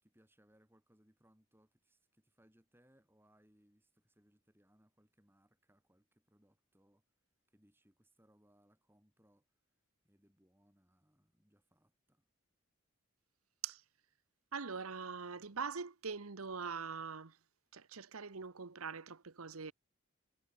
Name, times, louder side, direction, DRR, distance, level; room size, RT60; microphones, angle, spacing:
voice 1, 0.0-7.0 7.5-9.5 10.0-12.3, equal, 10° right, 5.8 m, -71 dB
voice 2, 14.5-17.4 17.7-19.7, right 5 dB, 90° right, 1.1 m, -43 dB
head